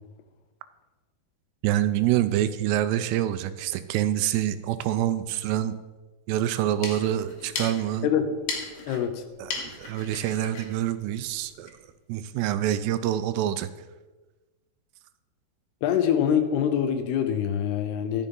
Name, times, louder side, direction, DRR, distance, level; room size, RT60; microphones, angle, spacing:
voice 1, 1.6-5.7 6.3-8.1 8.9-9.0 9.4-11.7 12.1-13.7, right 12 dB, 85° right, 12 dB, 2.6 m, -26 dB
sound 1, 6.5-11.8, left 4 dB, 60° left, 3.5 m, -38 dB
voice 2, 8.9-9.2 15.8-18.3, left 9 dB, 80° left, 8 dB, 2.6 m, -24 dB
12.0 x 7.1 x 5.3 m, 1.2 s
omnidirectional pair, 5.0 m